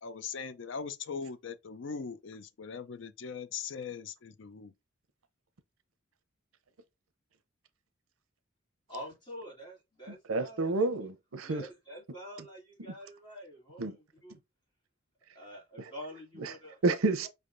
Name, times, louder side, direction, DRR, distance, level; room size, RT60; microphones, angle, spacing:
voice 1, 0.0-4.7, left 5 dB, 65° left, 0.5 m, -40 dB
voice 2, 8.9-10.8 11.4-13.9 14.2-14.4 15.3-16.8, equal, 20° left, 2.5 m, -46 dB
voice 3, 10.1-11.7 13.8-14.0 15.8-15.9 16.4-16.6 16.8-17.3, right 3 dB, 85° right, 0.6 m, -30 dB
5.2 x 3.4 x 2.5 m
head